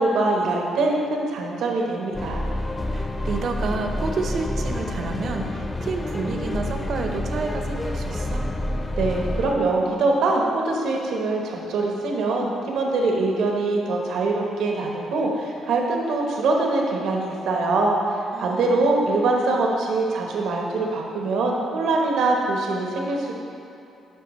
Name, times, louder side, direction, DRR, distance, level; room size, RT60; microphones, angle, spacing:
voice 1, 0.0-2.4 9.0-18.0 18.4-23.4, right 3 dB, 80° right, 0 dB, 1.0 m, -23 dB
sound 1, 2.1-9.6, left 1 dB, 20° left, 0.6 m, -28 dB
voice 2, 2.9-8.5 18.3-18.9, right 3 dB, 60° right, 4 dB, 0.7 m, -30 dB
11.0 x 4.5 x 3.1 m, 2.8 s
cardioid pair, 90°, 0 cm